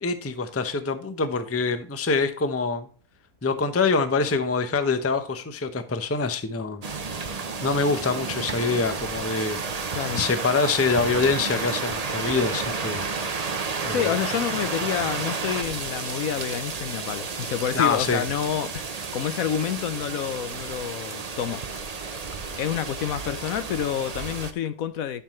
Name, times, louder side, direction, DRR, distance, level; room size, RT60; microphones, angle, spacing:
voice 1, 0.0-2.9 3.4-6.8 7.6-9.6 10.2-13.0 13.8-14.1 17.7-18.2, left 4 dB, 15° left, 0.5 m, -25 dB
sound 1, 6.8-24.5, right 4 dB, 35° right, 0.7 m, -31 dB
voice 2, 9.9-10.2 13.9-21.6 22.6-25.2, left 9 dB, 70° left, 1.0 m, -28 dB
11.5 x 5.7 x 3.0 m
omnidirectional pair, 1.7 m